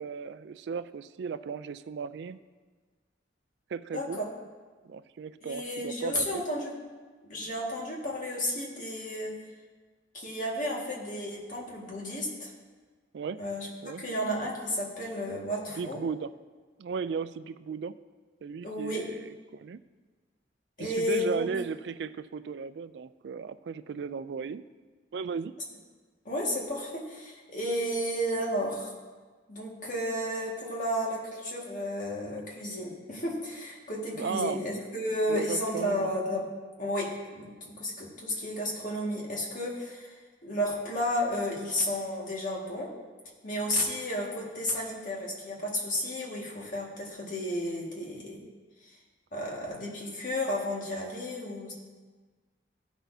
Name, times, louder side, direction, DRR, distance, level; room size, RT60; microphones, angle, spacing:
voice 1, 0.0-2.4 3.7-4.2 4.8-6.4 13.1-13.4 13.8-14.0 15.8-16.3 16.8-18.0 18.4-19.8 20.8-24.6 25.1-25.5 34.2-34.6 35.3-36.1, right 5 dB, 65° right, 14 dB, 0.3 m, -36 dB
voice 2, 3.9-4.2 5.4-6.7 7.2-9.3 10.1-12.5 13.4-13.7 14.0-16.0 18.6-19.1 20.8-21.4 26.3-28.9 29.5-36.5 36.8-42.9 43.4-48.5 49.3-51.7, left 1 dB, 45° left, -3 dB, 1.8 m, -32 dB
15.0 x 6.2 x 2.7 m, 1.4 s
head